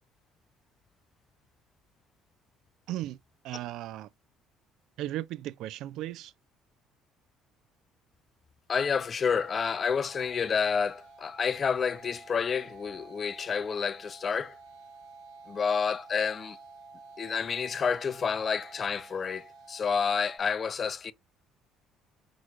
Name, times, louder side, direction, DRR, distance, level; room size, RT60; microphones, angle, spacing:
voice 1, 2.9-3.2 3.4-4.1 5.0-6.3, right 14 dB, 70° right, 0.3 m, -36 dB
voice 2, 8.7-14.6 15.5-16.6 17.2-21.1, left 6 dB, 35° left, 0.4 m, -29 dB
sound 1, 9.3-20.4, right 3 dB, 90° right, 2.9 m, -51 dB
6.0 x 3.1 x 2.4 m
cardioid pair, 115°, 0 cm